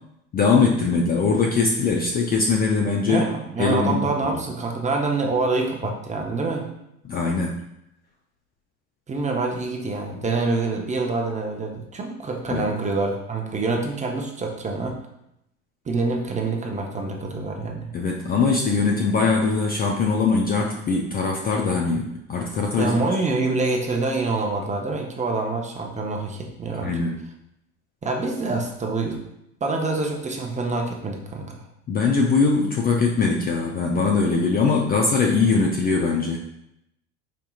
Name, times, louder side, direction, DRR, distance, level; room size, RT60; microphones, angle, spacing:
voice 1, 0.3-3.3 3.6-4.3 7.0-7.6 12.5-12.7 17.9-23.3 26.8-27.2 31.9-36.4, left 4 dB, 25° left, 0 dB, 0.4 m, -21 dB
voice 2, 3.1-6.7 9.1-15.0 15.9-17.9 22.8-27.0 28.0-29.2 29.6-31.6, right 3 dB, 20° right, 1 dB, 0.6 m, -26 dB
5.0 x 2.7 x 2.3 m, 0.81 s
hypercardioid pair, 75°, 38 cm